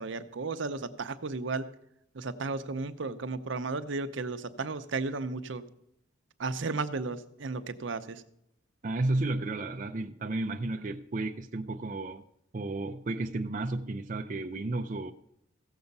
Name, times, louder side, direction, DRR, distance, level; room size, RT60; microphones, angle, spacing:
voice 1, 0.0-1.7 2.1-5.6 6.4-8.2, right 3 dB, 70° right, 10 dB, 0.7 m, -34 dB
voice 2, 8.8-12.2 12.5-15.1, right 2 dB, 40° right, 3 dB, 0.5 m, -32 dB
15.5 x 7.0 x 5.3 m, 0.77 s
head